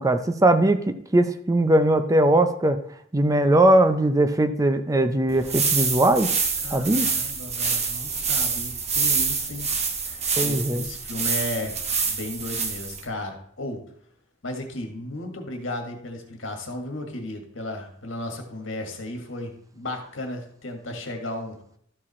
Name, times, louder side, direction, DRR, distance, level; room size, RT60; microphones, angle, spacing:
voice 1, 0.0-2.8 3.1-6.3 6.7-7.1 10.4-10.8, right 1 dB, 15° right, 9 dB, 0.5 m, -20 dB
sound 1, 5.3-13.1, right 5 dB, 35° right, 1.1 m, -26 dB
voice 2, 6.6-9.7 10.0-11.7 12.1-13.8 14.4-21.6, left 1 dB, 70° left, 3 dB, 1.8 m, -34 dB
13.0 x 4.9 x 4.2 m, 0.66 s
head